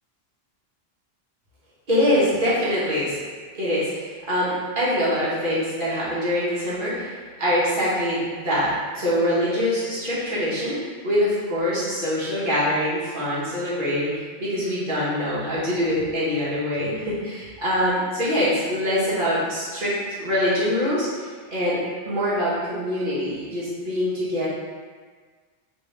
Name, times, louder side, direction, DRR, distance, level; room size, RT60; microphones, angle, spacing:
voice 1, 1.9-3.2 3.5-10.8 11.0-21.8 22.0-24.5, equal, 55° right, -10 dB, 1.5 m, -24 dB
3.4 x 3.3 x 3.3 m, 1.6 s
omnidirectional pair, 1.1 m